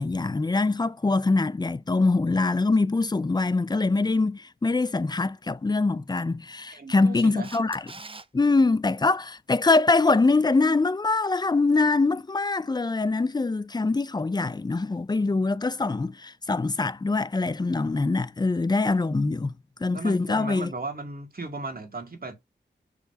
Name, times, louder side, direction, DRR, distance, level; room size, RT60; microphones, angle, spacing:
voice 1, 0.0-7.8 8.3-19.5 19.8-20.7, left 3 dB, 20° left, 0.5 m, -24 dB
voice 2, 6.7-7.5 19.9-22.4, right 3 dB, 50° right, 2.2 m, -36 dB
Camera, 7.4-8.3 15.0-15.1, right 3 dB, 25° right, 0.6 m, -42 dB
5.0 x 3.8 x 5.8 m
wide cardioid pair, 65°, 20 cm